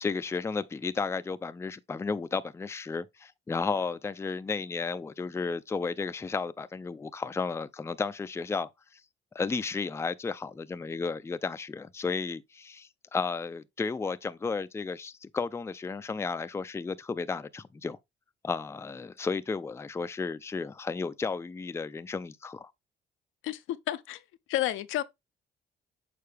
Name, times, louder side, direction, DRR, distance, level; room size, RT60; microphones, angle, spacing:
voice 1, 0.0-9.0 9.3-18.0 18.4-22.7, left 4 dB, 15° left, 0.4 m, -33 dB
voice 2, 23.4-25.0, left 13 dB, 85° left, 0.6 m, -31 dB
6.7 x 4.4 x 3.3 m
cardioid pair, 90°, 20 cm